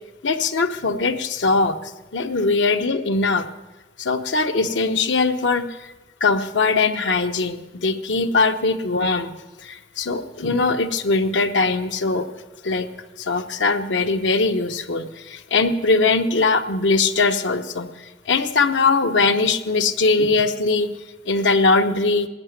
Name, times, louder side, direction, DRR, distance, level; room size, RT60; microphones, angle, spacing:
voice 1, 0.2-3.5 4.0-5.9 6.2-9.3 9.6-12.3 12.6-12.9 13.2-20.9 21.3-22.3, left 3 dB, 90° left, 7 dB, 0.8 m, -21 dB
17.0 x 5.7 x 9.5 m, 1.1 s
head